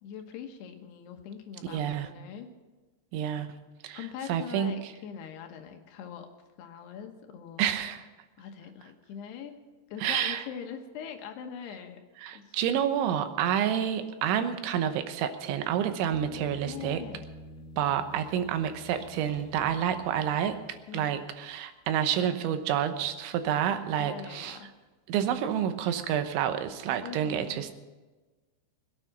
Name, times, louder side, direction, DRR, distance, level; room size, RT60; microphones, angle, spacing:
voice 1, 0.0-2.5 3.9-6.3 6.6-7.7 8.4-9.6 9.9-12.0 12.3-12.6 16.4-17.2 20.9-21.2 24.0-24.7 27.0-27.7, left 7 dB, 70° left, 5 dB, 3.1 m, -42 dB
voice 2, 1.6-2.1 3.1-3.5 3.8-4.9 7.6-8.0 10.0-10.4 12.2-17.0 17.8-20.6 20.9-24.6 25.1-27.7, right 9 dB, 90° right, 8 dB, 3.4 m, -29 dB
sound 1, 16.1-21.0, left 1 dB, ahead, 1.2 m, -47 dB
21.5 x 9.1 x 6.0 m, 1.2 s
omnidirectional pair, 5.2 m